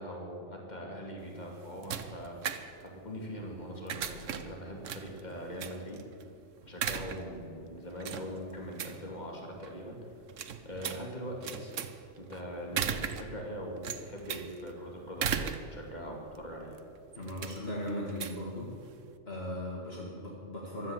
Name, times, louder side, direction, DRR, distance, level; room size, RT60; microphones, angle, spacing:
voice 1, 0.0-2.4 2.8-6.0 6.6-10.0 10.6-11.8 12.2-16.7, equal, 35° left, 0 dB, 2.9 m, -41 dB
sound 1, 1.2-19.2, right 8 dB, 85° right, 1.2 m, -39 dB
voice 2, 17.2-18.7 19.3-20.9, left 1 dB, 55° left, -3 dB, 2.4 m, -38 dB
15.5 x 12.0 x 7.3 m, 2.4 s
omnidirectional pair, 1.3 m